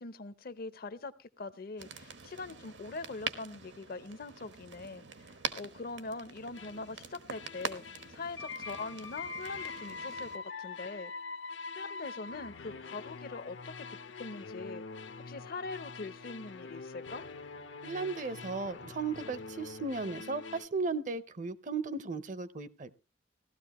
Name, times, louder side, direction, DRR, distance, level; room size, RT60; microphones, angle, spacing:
voice 1, 0.0-11.1 11.7-17.3, left 3 dB, 50° left, 0.6 m, -43 dB
sound 1, 1.8-10.4, right 6 dB, 75° right, 1.2 m, -44 dB
sound 2, 6.5-6.9 7.3-20.7, left 4 dB, 80° left, 0.9 m, -44 dB
voice 2, 17.8-23.0, right 4 dB, 45° right, 0.7 m, -36 dB
16.0 x 12.5 x 3.0 m
head